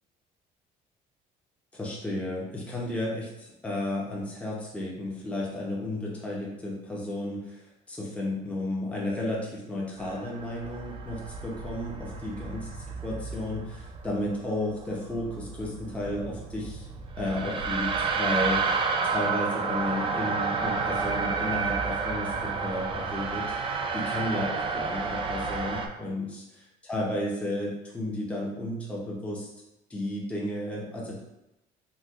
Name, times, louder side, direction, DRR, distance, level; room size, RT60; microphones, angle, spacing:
voice 1, 1.7-16.9 17.2-23.6 23.9-26.4 26.8-29.5 29.9-31.2, left 1 dB, 5° left, -5 dB, 0.6 m, -33 dB
sound 1, 10.0-25.9, right 4 dB, 30° right, 0.4 m, -31 dB
4.1 x 2.2 x 2.4 m, 0.92 s
cardioid pair, 110°, 17 cm